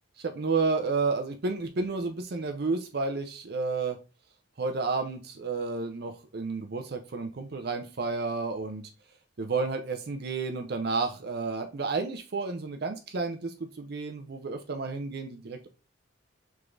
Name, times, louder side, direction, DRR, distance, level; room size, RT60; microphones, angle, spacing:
voice 1, 0.2-4.0 4.6-8.9 9.4-15.7, right 4 dB, 55° right, 6 dB, 0.6 m, -31 dB
4.9 x 3.6 x 2.4 m, 0.33 s
head